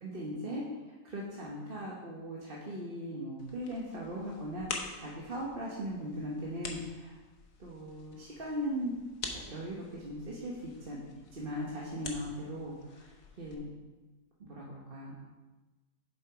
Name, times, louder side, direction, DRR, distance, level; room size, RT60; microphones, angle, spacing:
voice 1, 0.0-7.2 7.6-8.9 9.5-11.0 11.3-13.1 13.4-13.7 14.4-15.2, equal, 40° right, -4 dB, 1.2 m, -39 dB
sound 1, 3.4-13.5, left 4 dB, 60° left, 1.3 m, -46 dB
7.2 x 6.9 x 4.8 m, 1.2 s
omnidirectional pair, 1.7 m